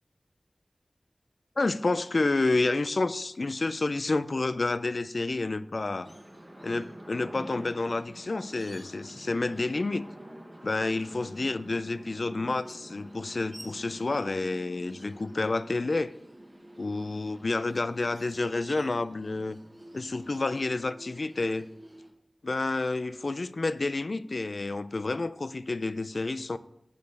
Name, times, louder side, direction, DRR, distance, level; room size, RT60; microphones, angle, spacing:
voice 1, 1.6-6.1 6.6-10.1 10.6-16.1 16.8-19.6 19.9-21.7 22.4-26.6, left 3 dB, 65° left, 0.4 m, -29 dB
sound 1, 6.0-22.1, right 1 dB, 25° right, 1.3 m, -48 dB
6.2 x 5.2 x 6.5 m
wide cardioid pair, 50°, 0 cm